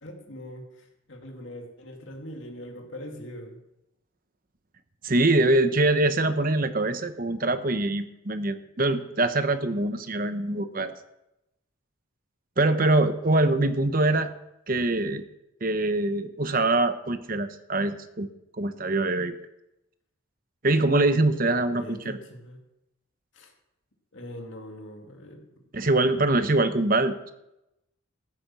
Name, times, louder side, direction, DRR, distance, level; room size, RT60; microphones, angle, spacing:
voice 1, 0.0-3.6 21.7-22.6 23.3-23.5 24.1-25.4, equal, 65° left, 2 dB, 2.3 m, -42 dB
voice 2, 5.0-10.9 12.6-14.3 14.7-15.2 15.6-18.3 18.6-19.3 20.6-22.2 25.7-27.3, right 2 dB, 40° right, 10 dB, 0.9 m, -24 dB
14.5 x 8.7 x 6.1 m, 0.88 s
head